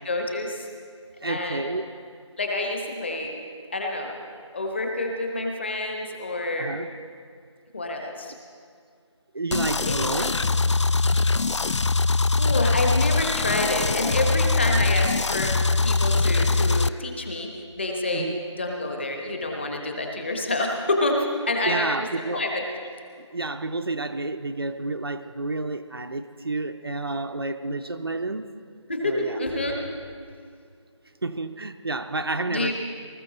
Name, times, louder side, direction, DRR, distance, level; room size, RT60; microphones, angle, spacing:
voice 1, 0.0-0.7 1.2-1.7 2.4-3.3 3.7-4.1 4.5-6.8 7.7-8.3 9.8-10.3 12.4-15.6 15.8-18.3 18.6-22.6 28.9-29.8 32.5-32.7, left 2 dB, 20° left, 2 dB, 1.1 m, -28 dB
voice 2, 1.2-1.8 6.6-6.9 9.3-10.3 18.1-18.4 21.6-22.5 23.3-28.5 29.0-29.5 31.2-32.7, right 2 dB, 50° right, 7 dB, 0.6 m, -30 dB
sound 1, 9.5-16.9, left 3 dB, 65° left, 0.4 m, -22 dB
19.5 x 14.0 x 4.0 m, 2.2 s
figure-of-eight pair, 170°, 16 cm